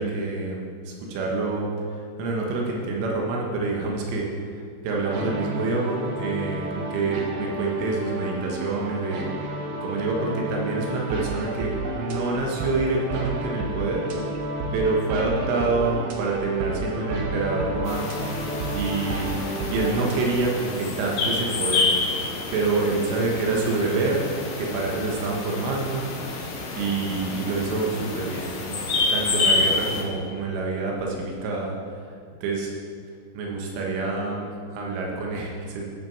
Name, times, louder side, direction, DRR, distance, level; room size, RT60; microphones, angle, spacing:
voice 1, 0.0-1.7 2.2-4.3 4.8-14.1 14.7-18.1 18.7-19.3 19.7-22.0 22.5-26.0 26.7-31.8 32.4-32.7 33.4-35.9, right 3 dB, 85° right, -1 dB, 4.0 m, -27 dB
sound 1, 4.9-20.1, right 2 dB, 65° right, 2.5 m, -31 dB
sound 2, 17.9-30.0, left 3 dB, 60° left, 2.1 m, -28 dB
13.5 x 11.5 x 4.9 m, 2.2 s
omnidirectional pair, 5.6 m